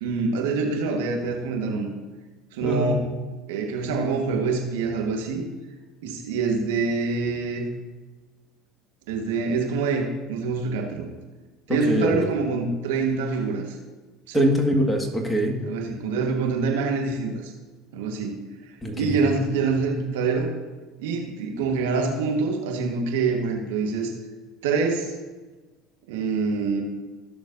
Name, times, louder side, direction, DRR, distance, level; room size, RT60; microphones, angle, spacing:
voice 1, 0.0-1.9 2.5-3.1 3.5-5.4 6.0-7.7 9.1-11.1 11.7-13.8 14.3-14.5 15.6-17.5 17.9-18.4 18.9-20.5 21.0-24.1 24.6-25.1 26.1-26.8, right 4 dB, 75° right, 2 dB, 1.5 m, -25 dB
voice 2, 2.6-2.9 11.7-12.2 14.3-15.6 18.8-19.2, equal, 10° left, 2 dB, 1.8 m, -23 dB
15.5 x 6.3 x 2.7 m, 1.3 s
hypercardioid pair, 75°, 0 cm